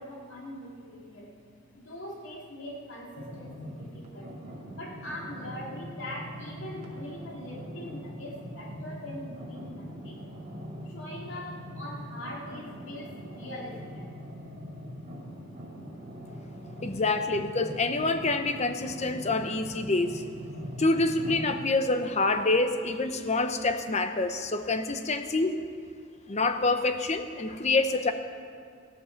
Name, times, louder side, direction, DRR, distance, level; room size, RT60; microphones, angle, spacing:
voice 1, 0.0-1.4 1.7-4.4 4.7-10.4 10.8-14.2, left 1 dB, 60° left, -2 dB, 2.6 m, -42 dB
sound 1, 3.2-21.5, equal, 30° right, 2.6 m, -42 dB
voice 2, 16.8-20.2 20.8-25.6 26.3-28.1, left 3 dB, 30° left, 8 dB, 0.7 m, -27 dB
15.5 x 12.5 x 5.9 m, 2.2 s
head